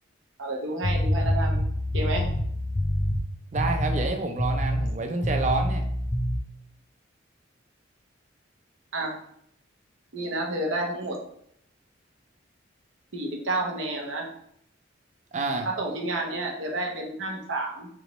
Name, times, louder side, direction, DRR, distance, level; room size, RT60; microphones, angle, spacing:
voice 1, 0.4-1.6 1.9-2.3 8.9-9.1 10.1-11.2 13.1-14.3 15.8-17.9, right 2 dB, 85° right, 0 dB, 0.8 m, -30 dB
sound 1, 0.8-3.2 3.6-4.1 4.4-4.9 5.2-6.4, equal, 35° left, 0.6 m, -26 dB
voice 2, 3.5-5.9 15.3-15.7, right 2 dB, 35° right, 5 dB, 0.4 m, -28 dB
4.0 x 3.4 x 3.0 m, 0.70 s
head